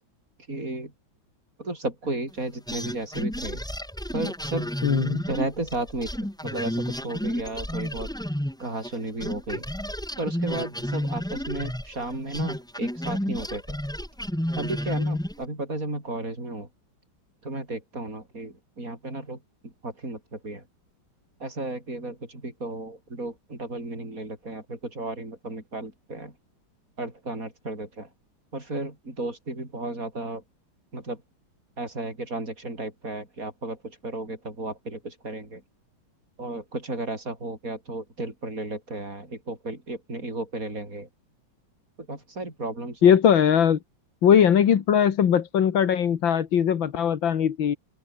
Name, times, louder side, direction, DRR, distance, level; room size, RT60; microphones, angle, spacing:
voice 1, 0.5-0.9 1.6-3.6 4.1-4.7 5.3-6.1 6.4-8.1 8.6-9.7 10.2-13.6 14.6-16.7 17.4-20.6 21.4-26.3 27.0-28.1 28.5-30.4 30.9-31.2 31.8-35.6 36.4-41.1 42.1-43.1, right 2 dB, 40° right, 7.9 m, -34 dB
sound 1, 2.7-9.0 9.2-15.4, equal, ahead, 1.2 m, -31 dB
voice 2, 4.8-5.2 43.0-43.8 44.2-47.8, left 8 dB, 70° left, 2.2 m, -20 dB
open air
omnidirectional pair, 2.2 m